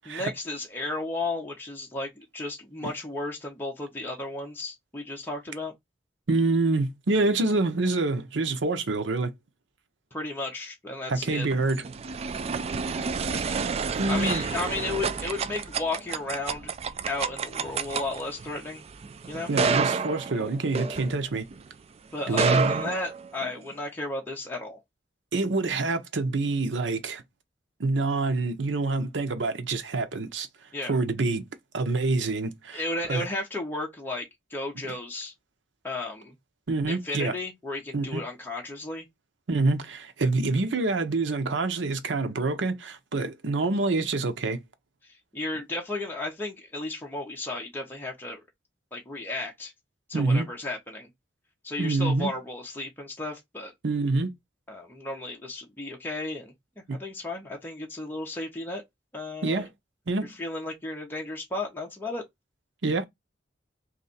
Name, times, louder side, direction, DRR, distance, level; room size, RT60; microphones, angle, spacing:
voice 1, 0.0-5.7 10.1-11.5 14.1-16.7 17.1-18.8 19.3-19.5 22.1-24.8 30.7-31.0 32.7-35.3 35.8-36.4 36.9-39.1 45.0-48.4 48.9-49.7 50.1-51.1 51.6-53.7 54.7-56.5 56.9-58.8 59.1-59.7 60.4-62.2, left 2 dB, 10° left, 0.9 m, -34 dB
voice 2, 6.3-9.3 11.1-11.8 14.0-14.4 19.5-21.5 22.3-22.9 25.3-27.2 27.8-30.5 30.9-31.5 31.7-32.8 33.1-33.3 34.8-34.9 36.7-37.4 37.9-38.2 39.5-44.6 50.1-50.5 51.8-52.3 53.8-54.3 56.9-57.0 59.4-59.7 60.1-60.3 62.8-63.1, right 3 dB, 80° right, 0.7 m, -26 dB
sound 1, 11.3-21.6 22.2-23.7, right 5 dB, 35° right, 0.3 m, -30 dB
3.2 x 2.6 x 4.0 m
head